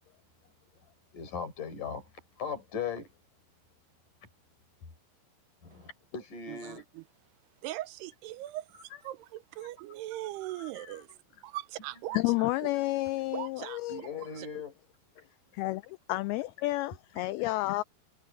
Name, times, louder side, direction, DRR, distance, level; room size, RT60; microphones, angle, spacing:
voice 1, 1.1-3.1 4.2-4.3 4.8-4.9 5.6-6.8 8.9-9.0 9.6-9.7 10.6-11.1 11.3-11.4 12.1-12.2 12.7-12.8 13.9-14.7 15.2-15.3 17.1-17.3, left 6 dB, 50° left, 5.8 m, -40 dB
voice 2, 6.5-7.0 7.6-8.8 9.0-9.2 9.5-11.1 11.4-12.5 13.3-13.8 14.4-14.5, right 15 dB, 80° right, 2.7 m, -39 dB
voice 3, 12.1-14.0 15.5-17.8, left 19 dB, 85° left, 2.2 m, -30 dB
omnidirectional pair, 4.9 m